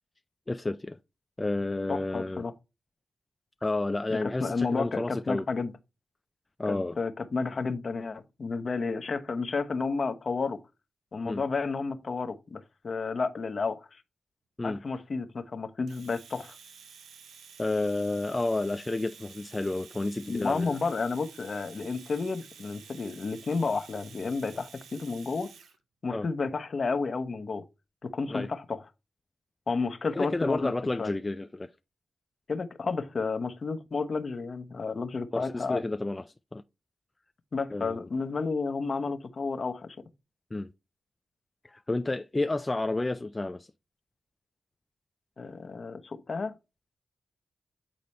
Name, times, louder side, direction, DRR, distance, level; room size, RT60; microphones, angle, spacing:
voice 1, 0.5-1.0 1.4-2.4 3.6-5.4 6.6-7.0 11.2-11.4 14.6-14.8 17.6-20.8 26.1-26.3 28.3-28.5 30.1-31.7 35.3-36.2 36.5-36.6 37.7-38.1 40.5-40.7 41.7-43.7, left 2 dB, 25° left, 0.4 m, -30 dB
voice 2, 1.9-2.5 4.1-5.7 6.7-10.6 11.1-14.0 14.6-16.6 20.3-25.5 26.0-27.6 28.0-28.8 29.7-30.7 31.0-31.1 32.5-35.8 37.5-40.0 45.4-46.5, left 4 dB, 55° left, 0.9 m, -31 dB
Domestic sounds home sounds, 15.9-25.8, right 6 dB, 90° right, 0.7 m, -51 dB
8.6 x 4.1 x 3.2 m
cardioid pair, 55°, 0 cm